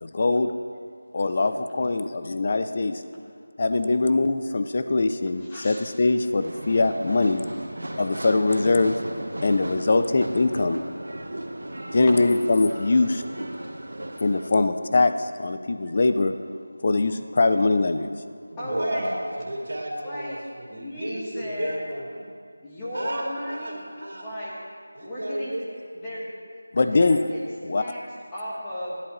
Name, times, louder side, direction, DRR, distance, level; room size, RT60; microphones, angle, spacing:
voice 1, 0.0-0.5 1.1-3.0 3.6-7.4 8.0-9.0 9.4-10.8 11.9-13.2 14.2-16.3 16.8-18.1 26.7-27.2 27.7-27.8, left 3 dB, 30° left, 9 dB, 0.4 m, -22 dB
voice 2, 5.4-5.8 12.7-12.8 18.6-19.1 20.0-20.4 20.7-21.8 22.6-23.9 24.2-24.6 25.0-25.5 25.9-26.3 26.7-27.4 27.8-28.0 28.3-29.0, equal, 10° left, -8 dB, 1.3 m, -35 dB
sound 1, 6.4-14.5, right 1 dB, 90° right, 1.2 m, -36 dB
voice 3, 18.5-22.3 22.9-24.3 24.9-25.6, right 1 dB, 60° right, -2 dB, 3.0 m, -33 dB
15.5 x 11.0 x 3.1 m, 2.1 s
figure-of-eight pair, 175°, 0 cm